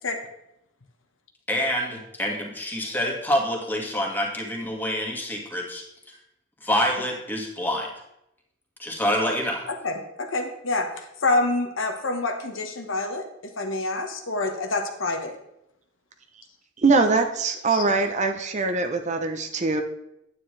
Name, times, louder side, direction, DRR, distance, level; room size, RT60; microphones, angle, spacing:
voice 1, 1.5-5.8 6.6-7.9 8.8-9.7, equal, 10° left, 0 dB, 1.8 m, -26 dB
voice 2, 9.7-15.4 17.7-17.9, left 2 dB, 75° left, 4 dB, 1.2 m, -27 dB
voice 3, 16.8-19.8, right 3 dB, 35° right, 6 dB, 0.7 m, -22 dB
9.5 x 9.1 x 3.3 m, 0.82 s
head